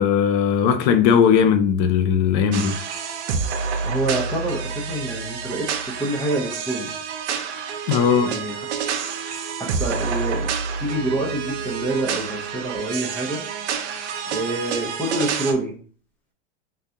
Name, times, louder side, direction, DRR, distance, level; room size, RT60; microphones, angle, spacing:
voice 1, 0.0-2.8 7.9-8.3, left 7 dB, 45° left, 0.5 m, -18 dB
sound 1, 2.5-15.5, right 6 dB, 85° right, 0.7 m, -28 dB
voice 2, 3.8-6.9 8.2-8.6 9.6-10.5 10.8-13.4 14.3-15.7, right 1 dB, 5° left, 0.7 m, -27 dB
3.7 x 2.2 x 2.7 m
supercardioid pair, 135°, 33 cm